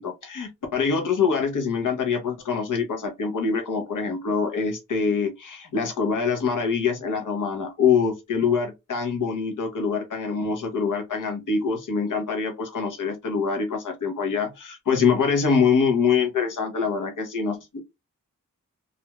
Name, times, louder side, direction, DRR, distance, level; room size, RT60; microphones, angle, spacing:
voice 1, 0.0-17.8, left 5 dB, 75° left, 0.8 m, -24 dB
2.5 x 2.2 x 2.9 m
cardioid pair, 50°, 31 cm